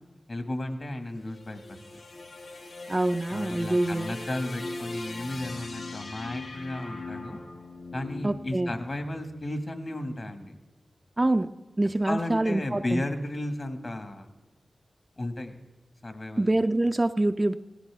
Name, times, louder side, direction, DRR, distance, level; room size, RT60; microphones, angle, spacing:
voice 1, 0.3-1.6 3.3-7.4 7.9-10.5 12.1-14.3 15.2-15.6 16.0-16.5, left 1 dB, 45° left, 6 dB, 1.7 m, -34 dB
sound 1, 1.1-9.4, left 3 dB, 75° left, 1.3 m, -40 dB
voice 2, 2.9-4.1 8.2-8.7 11.2-11.5 11.8-13.0 16.4-17.5, right 2 dB, 25° right, 9 dB, 0.4 m, -25 dB
18.5 x 16.0 x 3.5 m, 1.1 s
wide cardioid pair, 85°, 0 cm